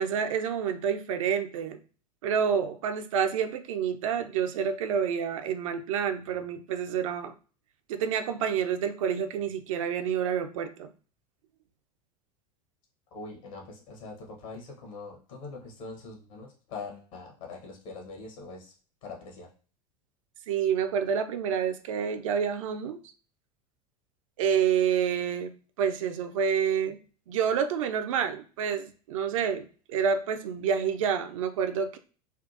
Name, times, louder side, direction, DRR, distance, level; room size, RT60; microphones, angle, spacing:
voice 1, 0.0-1.8 2.2-7.3 7.9-10.9 20.5-23.0 24.4-27.0 27.3-32.0, right 7 dB, 55° right, 8 dB, 0.4 m, -28 dB
voice 2, 13.1-18.7 19.0-19.5, left 3 dB, 55° left, 1 dB, 1.1 m, -43 dB
3.5 x 2.4 x 2.6 m, 0.37 s
figure-of-eight pair, 80°, 20 cm